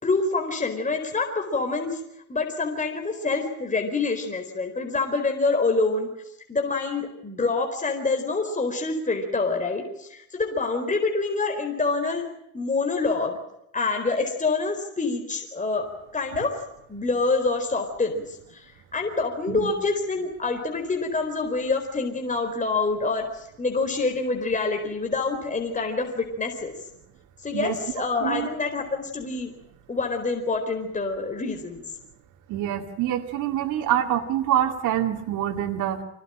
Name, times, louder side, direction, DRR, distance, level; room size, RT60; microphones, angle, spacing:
voice 1, 0.0-2.0 2.3-6.1 6.5-12.3 12.5-13.4 13.7-16.5 16.9-26.7 27.4-29.5 29.9-31.8, left 3 dB, 25° left, 3 dB, 4.5 m, -26 dB
voice 2, 32.5-36.0, right 11 dB, 85° right, 4 dB, 2.4 m, -26 dB
26.0 x 18.5 x 9.0 m, 0.81 s
cardioid pair, 90°, 30 cm